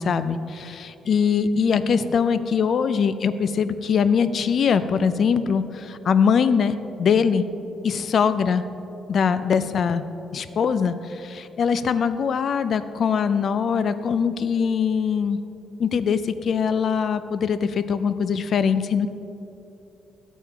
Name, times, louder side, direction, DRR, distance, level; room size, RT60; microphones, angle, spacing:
voice 1, 0.0-7.4 7.8-8.6 9.1-10.0 10.3-15.4 15.8-19.1, left 6 dB, 55° left, 12 dB, 0.5 m, -22 dB
13.5 x 8.4 x 3.5 m, 2.9 s
cardioid pair, 90°, 0 cm